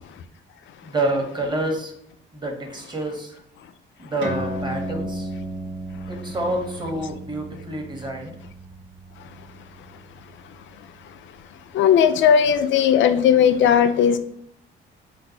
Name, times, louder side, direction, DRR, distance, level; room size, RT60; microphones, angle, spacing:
voice 1, 0.8-1.9 2.3-3.4 4.0-5.3 6.1-8.4, right 1 dB, 20° right, 1.0 m, -28 dB
sound 1, 4.2-11.1, right 1 dB, 65° right, 1.1 m, -34 dB
voice 2, 11.7-14.2, left 8 dB, 70° left, 0.4 m, -17 dB
4.5 x 2.2 x 3.9 m
cardioid pair, 90°, 20 cm